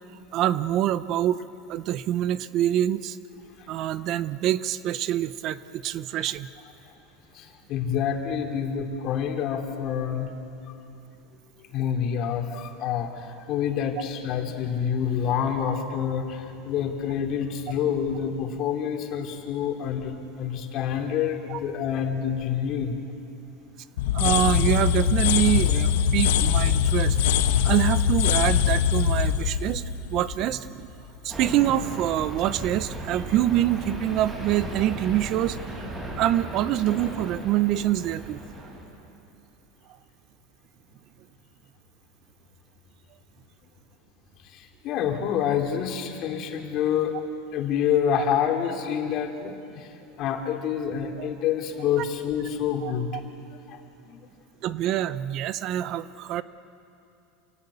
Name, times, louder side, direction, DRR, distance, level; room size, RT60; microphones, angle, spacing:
voice 1, 0.3-1.4 1.7-3.2 3.7-6.5 21.5-21.6 24.1-27.2 27.6-30.9 31.2-38.4 51.2-51.3 52.8-52.9 54.6-56.4, right 12 dB, 45° right, 15 dB, 0.7 m, -25 dB
voice 2, 7.3-10.3 11.7-23.0 44.4-47.2 47.5-53.2 53.7-53.8 54.0-54.2, left 8 dB, 45° left, 3 dB, 2.9 m, -27 dB
sound 1, 24.0-30.8, left 9 dB, 90° left, 1.5 m, -22 dB
sound 2, 31.3-38.8, right 2 dB, 15° right, 7.6 m, -36 dB
27.5 x 18.5 x 8.5 m, 2.7 s
supercardioid pair, 140°, 0 cm